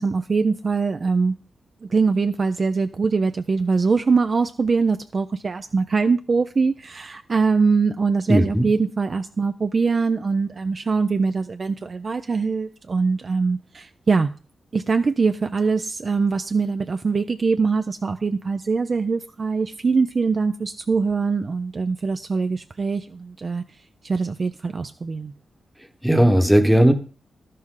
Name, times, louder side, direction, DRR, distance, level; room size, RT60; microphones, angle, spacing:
voice 1, 0.0-1.4 1.8-14.3 14.7-23.6 24.0-25.3, right 4 dB, 30° right, 9 dB, 0.4 m, -22 dB
voice 2, 8.3-8.7 26.0-26.9, equal, ahead, 7 dB, 1.0 m, -16 dB
12.5 x 11.0 x 3.8 m, 0.36 s
wide cardioid pair, 180°, 0 cm